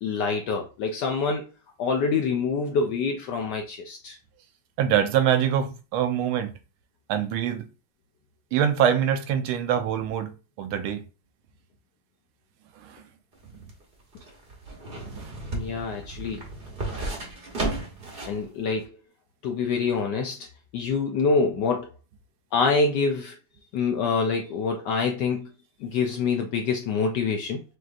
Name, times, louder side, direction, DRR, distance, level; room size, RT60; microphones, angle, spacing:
voice 1, 0.0-1.5 1.8-4.2 15.5-16.4 18.3-18.9 19.4-20.5 20.7-21.9 22.5-23.4 23.7-25.5 25.8-27.6, left 4 dB, 75° left, 1.0 m, -26 dB
voice 2, 4.8-6.5 7.1-7.7 8.5-10.3 10.6-11.0 12.8-13.0 15.0-15.4, right 9 dB, 80° right, 1.4 m, -24 dB
sound 1, 13.3-18.4 18.8-18.9, right 2 dB, 35° right, 0.9 m, -34 dB
6.0 x 2.6 x 2.4 m
omnidirectional pair, 2.3 m